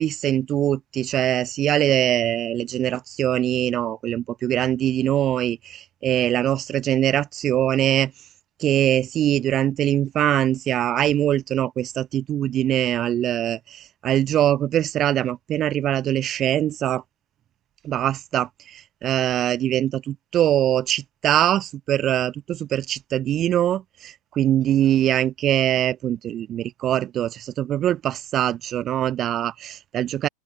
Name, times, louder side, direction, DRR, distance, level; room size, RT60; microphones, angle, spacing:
voice 1, 0.0-8.1 8.6-17.0 17.8-18.5 19.0-30.3, right 11 dB, 30° right, 0.4 m, -22 dB
open air
figure-of-eight pair, 85°, 0 cm